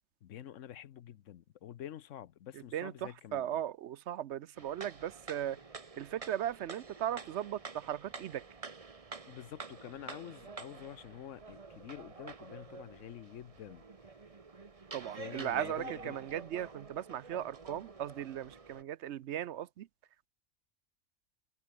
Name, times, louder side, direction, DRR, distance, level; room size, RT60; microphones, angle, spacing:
voice 1, 0.2-3.6 9.3-13.8 15.1-16.2, left 11 dB, 80° left, 1.1 m, -48 dB
voice 2, 2.5-5.6 6.0-8.4 14.9-19.9, right 11 dB, 70° right, 0.9 m, -37 dB
sound 1, 4.6-18.8, right 4 dB, 30° right, 1.2 m, -48 dB
omnidirectional pair, 1.3 m